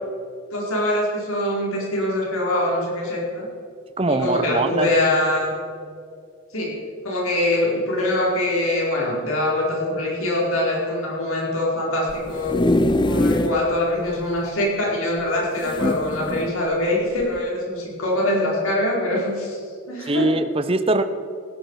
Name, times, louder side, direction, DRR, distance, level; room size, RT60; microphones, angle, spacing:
voice 1, 0.5-3.5 4.1-5.5 6.5-6.7 7.0-12.5 13.0-19.6 19.9-20.3, left 1 dB, 80° left, -3 dB, 4.6 m, -23 dB
voice 2, 4.0-4.9 20.1-21.0, right 2 dB, 25° right, 9 dB, 0.7 m, -21 dB
sound 1, 12.1-13.6 14.1-14.2 14.4-14.5 15.6-16.5 17.2-17.4, left 1 dB, 20° left, 0.4 m, -22 dB
16.5 x 13.5 x 4.8 m, 2.3 s
head